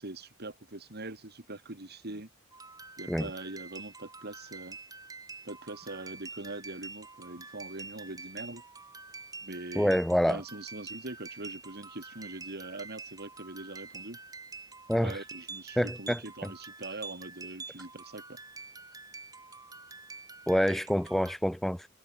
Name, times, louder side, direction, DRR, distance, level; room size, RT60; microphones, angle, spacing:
voice 1, 0.0-2.3 3.0-4.8 5.4-8.6 9.4-10.0 10.3-14.2 15.0-18.2, right 2 dB, 50° right, 2.9 m, -42 dB
sound 1, 2.5-21.4, right 4 dB, 20° right, 4.3 m, -47 dB
voice 2, 9.8-10.4 14.9-15.1 15.8-16.2 20.5-21.9, equal, ahead, 0.4 m, -26 dB
head